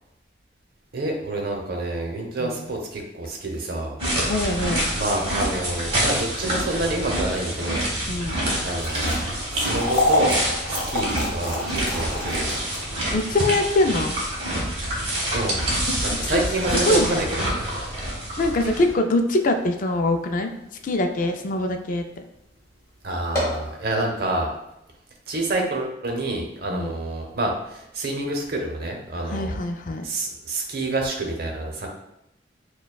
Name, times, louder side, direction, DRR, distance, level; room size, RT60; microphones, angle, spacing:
voice 1, 0.9-4.0 4.9-7.9 8.6-9.2 9.5-10.4 10.7-12.6 15.3-15.7 16.0-17.6 23.0-24.5 25.3-29.6 30.0-31.9, right 2 dB, 55° right, 1 dB, 0.8 m, -28 dB
sound 1, 4.0-18.9, right 1 dB, 35° right, 1.1 m, -27 dB
voice 2, 4.3-4.9 8.1-8.4 13.1-14.2 15.9-16.2 16.9-17.3 18.4-20.5 20.8-22.0 26.7-26.9 29.3-30.0, left 2 dB, 45° left, 5 dB, 0.4 m, -23 dB
sound 2, 8.6-20.9 21.3-21.4 22.1-22.3 22.6-22.7 23.1-23.7, left 1 dB, 15° left, 1.3 m, -30 dB
6.7 x 2.3 x 2.3 m, 0.84 s
head